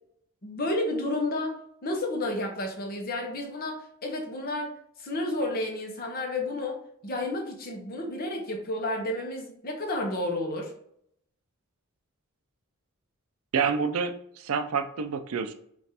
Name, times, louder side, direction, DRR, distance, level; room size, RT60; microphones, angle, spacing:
voice 1, 0.4-1.5 1.8-10.7, left 1 dB, 45° left, 1 dB, 0.9 m, -31 dB
voice 2, 13.5-15.5, right 6 dB, 70° right, 8 dB, 0.5 m, -28 dB
5.2 x 2.5 x 2.8 m, 0.68 s
head